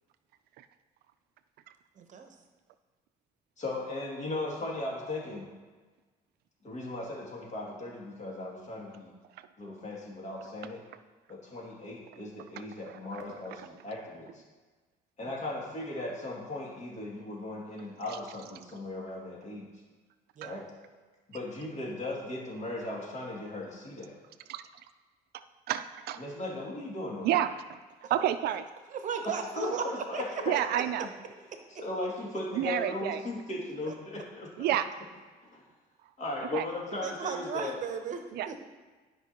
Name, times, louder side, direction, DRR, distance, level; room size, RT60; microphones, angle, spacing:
voice 1, 2.0-2.3 20.4-20.6 28.0-28.1 28.9-29.8 30.1-30.2 37.0-38.2 38.5-38.6, right 6 dB, 50° right, 5 dB, 0.8 m, -35 dB
voice 2, 3.6-5.4 6.6-9.1 9.6-10.8 11.3-14.4 15.2-19.6 20.4-20.6 21.3-24.2 26.2-27.3 29.2-30.5 31.4-34.5 35.5-35.6 36.2-37.8, left 2 dB, 45° left, -4 dB, 2.4 m, -37 dB
voice 3, 12.6-13.2 18.1-18.2 20.4-20.5 24.5-24.7 25.3-26.2 27.2-27.8 28.1-28.6 30.5-31.1 32.5-33.2 34.6-34.9 36.5-36.7 38.3-38.5, right 11 dB, 70° right, 11 dB, 0.4 m, -30 dB
12.0 x 5.3 x 2.9 m, 1.3 s
cardioid pair, 110°, 17 cm